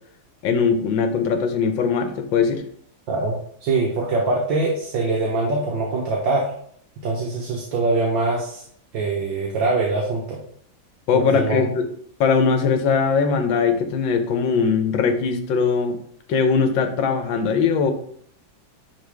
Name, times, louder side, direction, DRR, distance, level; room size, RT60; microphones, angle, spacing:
voice 1, 0.4-2.6 11.1-11.9 12.2-16.0 16.3-17.9, left 5 dB, 75° left, 7 dB, 1.6 m, -20 dB
voice 2, 3.6-6.5 7.0-8.6 8.9-10.4 11.1-11.7, right 3 dB, 70° right, -2 dB, 1.8 m, -23 dB
10.5 x 3.8 x 3.4 m, 0.64 s
omnidirectional pair, 2.1 m